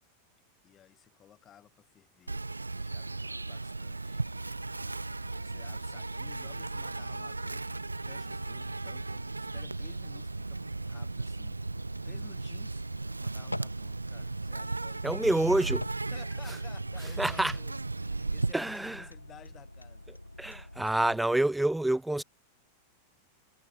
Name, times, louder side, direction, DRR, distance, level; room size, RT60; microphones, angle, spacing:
voice 1, 0.6-2.5 2.8-4.2 5.3-11.6 12.0-12.8 13.2-15.7 16.1-17.8 18.0-20.5, left 10 dB, 25° left, 6.6 m, -55 dB
Insect, 2.3-18.5, right 3 dB, 80° right, 0.8 m, -36 dB
sound 1, 4.2-21.2, left 1 dB, 85° left, 2.0 m, -47 dB
voice 2, 15.0-15.8 17.2-17.5 18.2-19.0 20.4-22.2, right 1 dB, 5° right, 1.0 m, -28 dB
figure-of-eight pair, 90°, 0 cm